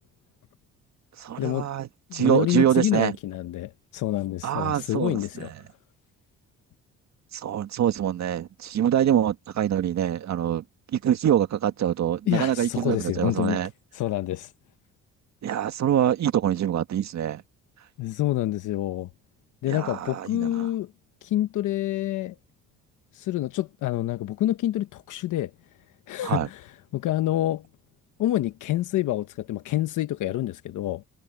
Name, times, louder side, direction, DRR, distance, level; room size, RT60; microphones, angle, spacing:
voice 1, 1.2-3.2 4.4-5.5 7.3-10.6 10.9-13.7 15.4-17.4 19.7-20.7 26.2-26.5, right 10 dB, 65° right, 2.0 m, -25 dB
voice 2, 2.1-5.5 12.3-13.6 13.9-14.5 18.0-19.1 19.6-20.9 21.2-22.4 23.1-25.5 26.1-27.7 28.2-31.0, left 14 dB, 80° left, 1.1 m, -27 dB
cardioid pair, 90°, 30 cm